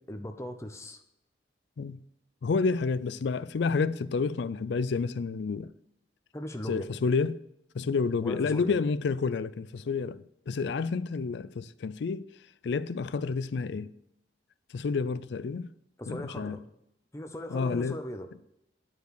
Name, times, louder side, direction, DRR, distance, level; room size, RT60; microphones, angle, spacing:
voice 1, 0.1-1.0 6.3-6.9 8.2-8.7 16.0-16.6 17.1-18.3, left 1 dB, 15° left, 0.6 m, -38 dB
voice 2, 2.4-5.7 6.7-7.4 7.7-12.2 12.6-13.9 14.7-15.7 16.1-16.6 17.5-18.0, left 4 dB, 65° left, 0.4 m, -29 dB
9.3 x 4.6 x 6.4 m
head